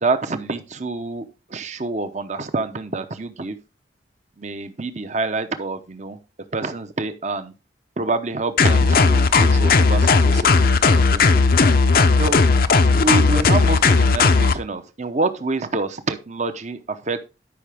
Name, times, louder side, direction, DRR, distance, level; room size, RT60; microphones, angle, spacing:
voice 1, 0.0-3.6 4.4-6.2 6.5-7.5 8.0-11.4 12.2-12.4 13.0-17.3, right 3 dB, 40° right, 10 dB, 0.9 m, -27 dB
sound 1, 8.6-14.6, left 4 dB, 50° left, 0.7 m, -16 dB
12.0 x 5.6 x 3.5 m, 0.28 s
head